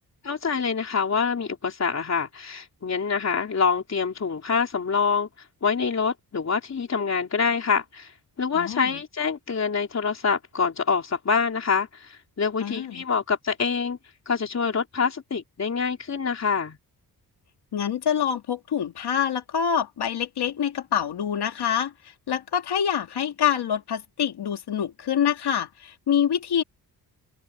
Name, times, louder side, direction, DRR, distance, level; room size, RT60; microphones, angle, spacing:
voice 1, 0.2-14.0 14.3-16.8, left 5 dB, 40° left, 3.6 m, -26 dB
voice 2, 8.5-8.9 12.6-13.0 17.7-21.9 22.3-26.6, left 8 dB, 85° left, 2.4 m, -26 dB
open air
wide cardioid pair, 120°, 39 cm